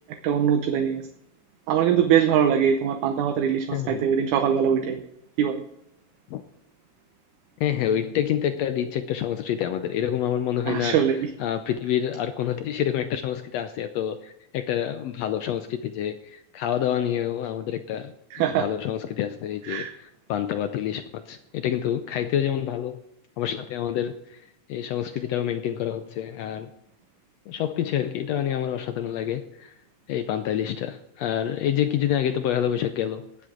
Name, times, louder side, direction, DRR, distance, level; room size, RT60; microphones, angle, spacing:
voice 1, 0.2-1.0 1.7-5.0 5.4-5.6 10.7-11.3 18.3-18.7 19.6-19.9, right 8 dB, 75° right, 5 dB, 2.2 m, -22 dB
voice 2, 3.7-4.0 6.3-6.4 7.6-11.0 11.4-18.1 18.6-23.0 23.4-24.4 24.7-26.7 27.5-29.7 30.1-33.2, left 10 dB, 80° left, 9 dB, 1.5 m, -27 dB
18.5 x 7.8 x 3.8 m, 0.81 s
omnidirectional pair, 3.6 m